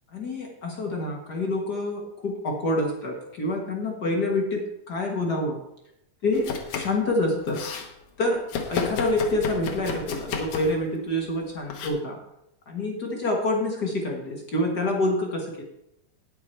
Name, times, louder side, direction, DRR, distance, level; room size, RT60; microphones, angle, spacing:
voice 1, 0.1-5.6 6.2-7.6 8.2-8.4 8.7-12.2 12.7-15.6, left 1 dB, 50° left, 1 dB, 1.2 m, -27 dB
Domestic sounds home sounds, 6.3-7.0 7.3-7.9 8.5-10.8 11.7-11.9, left 5 dB, 65° left, 2.3 m, -32 dB
10.0 x 9.0 x 4.4 m, 0.82 s
omnidirectional pair, 3.7 m